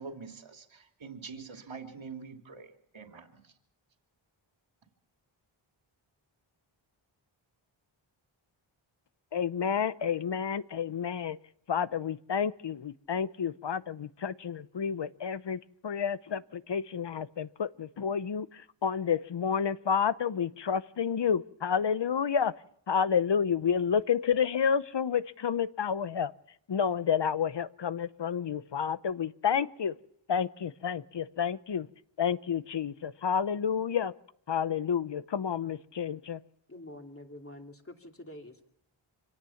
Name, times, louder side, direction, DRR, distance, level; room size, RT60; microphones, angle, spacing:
voice 1, 0.0-3.5, right 5 dB, 65° right, 4 dB, 2.9 m, -45 dB
voice 2, 9.3-11.4 11.7-22.5 22.9-26.3 26.7-30.0 30.3-31.9 32.2-34.1 34.5-36.4, left 7 dB, 55° left, 15 dB, 0.9 m, -30 dB
voice 3, 36.7-38.7, left 1 dB, 25° left, 3 dB, 2.8 m, -47 dB
25.5 x 18.0 x 7.2 m, 0.71 s
wide cardioid pair, 90°, 49 cm